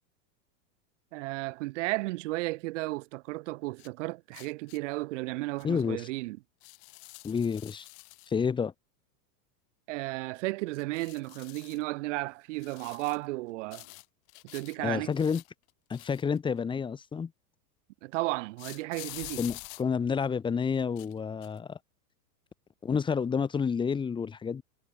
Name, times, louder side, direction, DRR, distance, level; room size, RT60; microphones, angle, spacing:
voice 1, 1.1-6.4 9.9-13.8 14.5-15.1 18.0-19.4, right 21 dB, 50° right, 4.2 m, -34 dB
sound 1, 3.8-3.9 4.3-4.8 5.6-5.7 6.6-8.4 10.7-11.8 12.6-13.3 13.7-14.8 15.1-16.6 18.6-19.8 20.8-21.1 21.4-21.6, left 38 dB, 40° left, 7.7 m, -47 dB
voice 2, 5.6-6.1 7.2-7.9 8.3-8.7 14.8-15.4 15.9-17.3 19.4-21.8 22.8-24.6, left 6 dB, 10° left, 1.8 m, -29 dB
supercardioid pair, 170°, 47 cm